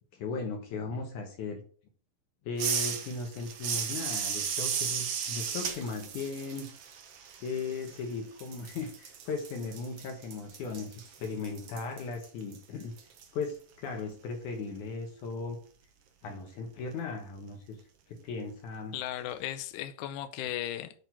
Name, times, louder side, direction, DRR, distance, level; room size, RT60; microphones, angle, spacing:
voice 1, 0.1-1.6 2.5-6.7 7.4-10.9 11.2-12.9 13.3-15.6 16.2-17.8 18.1-19.0, left 4 dB, 65° left, 2.2 m, -37 dB
sound 1, 2.6-8.1 8.4-13.2, right 7 dB, 80° right, 1.3 m, -35 dB
voice 2, 18.9-20.9, left 12 dB, 85° left, 1.8 m, -36 dB
8.3 x 4.5 x 4.5 m
omnidirectional pair, 4.3 m